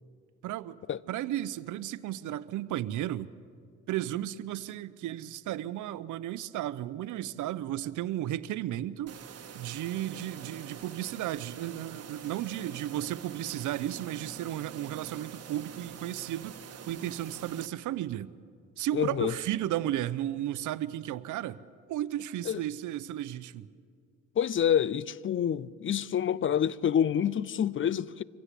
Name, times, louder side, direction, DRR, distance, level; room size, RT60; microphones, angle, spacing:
voice 1, 0.4-0.8 1.1-3.3 3.9-9.2 9.5-16.6 16.9-18.3 18.8-21.6 21.9-23.7, right 13 dB, 80° right, 0.8 m, -34 dB
sound 1, 9.1-17.7, right 7 dB, 55° right, 1.5 m, -46 dB
voice 2, 18.9-19.3 22.5-22.6 24.4-28.2, left 9 dB, 40° left, 0.5 m, -27 dB
24.0 x 16.0 x 8.3 m
cardioid pair, 90°, 30 cm